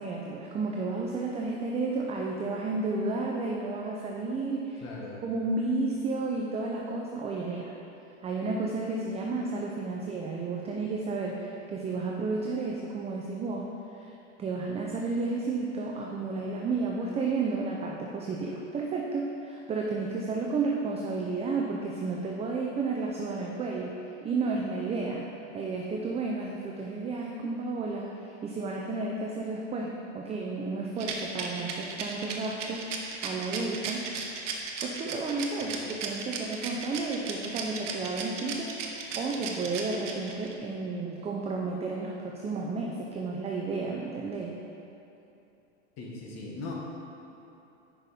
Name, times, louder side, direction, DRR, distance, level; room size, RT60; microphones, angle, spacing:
voice 1, 0.0-4.8 5.2-7.7 8.2-13.7 13.9-14.1 14.4-23.9 24.2-25.3 25.5-32.9 33.2-34.1 34.8-38.7 39.2-44.5, right 3 dB, 20° right, -1 dB, 0.5 m, -32 dB
voice 2, 4.8-5.2 35.6-35.7 46.0-46.7, left 3 dB, 45° left, -2 dB, 1.4 m, -39 dB
Rattle, 31.0-40.5, right 6 dB, 85° right, 0.9 m, -36 dB
5.9 x 5.3 x 4.2 m, 2.9 s
hypercardioid pair, 105°, 36 cm